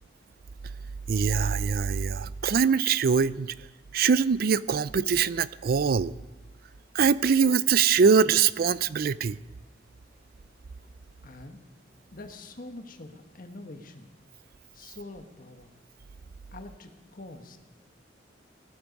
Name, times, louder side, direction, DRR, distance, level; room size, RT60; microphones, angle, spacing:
voice 1, 1.1-3.5 3.9-6.1 6.9-9.4, right 6 dB, 55° right, 17 dB, 0.4 m, -23 dB
voice 2, 11.2-11.6 12.1-14.1 14.7-15.7 16.5-17.6, left 2 dB, 50° left, 6 dB, 1.5 m, -44 dB
18.5 x 12.5 x 5.3 m, 1.1 s
head